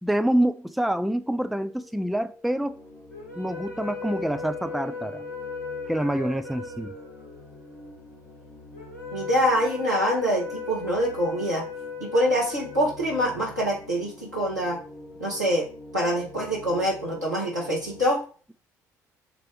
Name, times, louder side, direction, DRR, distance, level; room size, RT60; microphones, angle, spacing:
voice 1, 0.0-2.8 3.4-5.2 5.9-6.9, right 1 dB, ahead, 0.5 m, -26 dB
sound 1, 1.2-18.1, left 2 dB, 25° left, 2.0 m, -47 dB
sound 2, 3.1-13.5, left 4 dB, 75° left, 1.4 m, -37 dB
voice 2, 9.1-11.6 12.0-14.8 15.2-15.7 15.9-18.2, equal, 90° right, 2.0 m, -25 dB
7.3 x 3.1 x 4.9 m
figure-of-eight pair, 50°, 9 cm